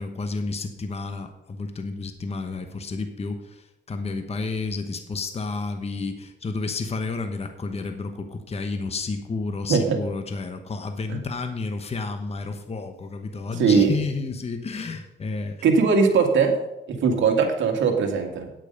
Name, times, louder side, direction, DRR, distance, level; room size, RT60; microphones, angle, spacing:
voice 1, 0.0-15.6, left 3 dB, 30° left, 7 dB, 1.1 m, -31 dB
voice 2, 13.6-13.9 15.6-16.5 16.9-18.5, right 5 dB, 70° right, 3 dB, 2.0 m, -20 dB
9.3 x 8.6 x 5.3 m, 0.89 s
cardioid pair, 90°, 20 cm